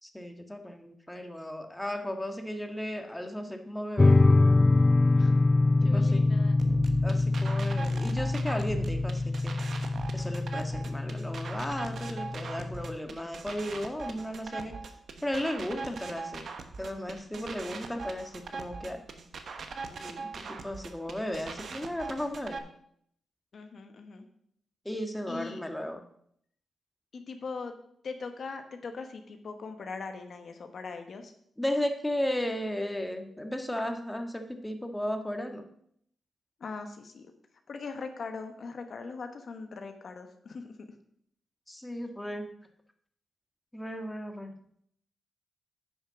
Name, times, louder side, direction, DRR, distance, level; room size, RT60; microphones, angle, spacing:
voice 1, 0.0-4.2 5.8-6.2 7.0-9.6 10.1-14.8 15.2-16.5 16.8-19.0 19.9-22.6 24.8-26.0 31.6-35.6 41.7-42.5 43.7-44.5, left 1 dB, 10° left, 5 dB, 1.5 m, -35 dB
sound 1, 4.0-12.9, left 2 dB, 30° left, 0.3 m, -25 dB
voice 2, 5.1-5.4 5.8-6.6 17.4-17.8 23.5-24.2 25.3-25.6 27.1-27.7 28.0-31.3 36.6-37.3 37.7-41.0, left 4 dB, 65° left, 6 dB, 1.1 m, -41 dB
sound 2, 6.6-22.6, right 4 dB, 65° right, 1.1 m, -40 dB
9.7 x 5.7 x 5.9 m, 0.69 s
supercardioid pair, 50°, 0 cm